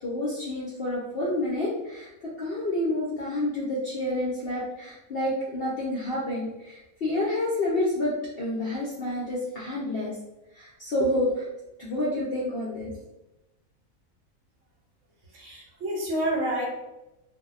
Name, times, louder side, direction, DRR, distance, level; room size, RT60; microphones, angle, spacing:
voice 1, 0.0-10.1 10.5-11.5 11.8-12.9, left 1 dB, 65° left, -6 dB, 0.6 m, -29 dB
voice 2, 15.3-16.7, right 1 dB, 65° right, -3 dB, 0.8 m, -28 dB
2.6 x 2.1 x 2.3 m, 0.96 s
omnidirectional pair, 1.5 m